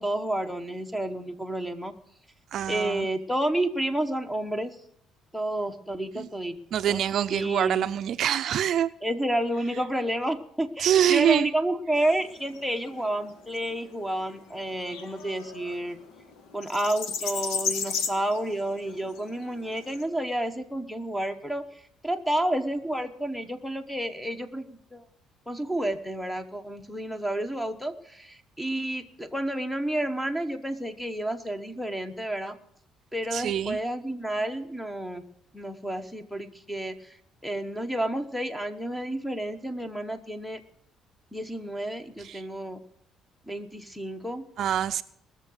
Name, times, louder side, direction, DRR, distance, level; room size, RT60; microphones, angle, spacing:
voice 1, 0.0-1.9 2.7-4.8 5.3-6.6 6.9-7.0 7.3-7.9 9.0-16.0 16.5-21.6 22.0-25.0 25.5-32.6 33.1-35.2 35.5-37.2 37.4-40.6 41.3-42.8 43.5-44.4, right 1 dB, 5° left, 9 dB, 1.1 m, -30 dB
voice 2, 2.5-3.1 6.1-6.3 6.7-8.9 10.8-11.5 33.3-33.8 42.2-42.4 44.6-45.0, right 10 dB, 60° right, 12 dB, 0.4 m, -25 dB
sound 1, 12.0-20.0, left 5 dB, 85° left, 1.4 m, -36 dB
20.0 x 6.9 x 6.4 m, 0.68 s
cardioid pair, 125°, 0 cm